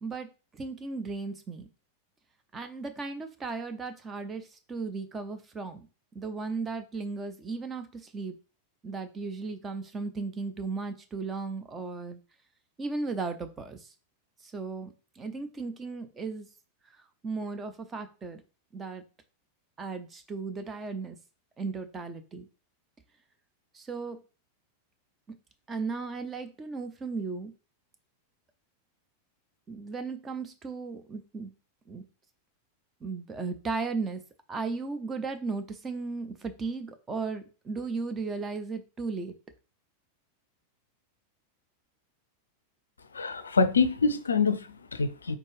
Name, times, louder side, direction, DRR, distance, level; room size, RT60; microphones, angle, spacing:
voice 1, 0.0-1.7 2.5-5.9 6.1-8.3 8.8-12.2 12.8-13.9 14.4-16.5 17.2-18.4 18.7-19.0 19.8-21.2 21.6-22.5 23.7-24.2 25.3-25.4 25.7-27.5 29.7-31.5 31.9-32.0 33.0-34.2 34.5-39.3, right 4 dB, 20° right, 0.7 m, -36 dB
voice 2, 43.1-45.4, left 4 dB, 75° left, 0.4 m, -26 dB
4.3 x 3.5 x 3.4 m
figure-of-eight pair, 90°, 0 cm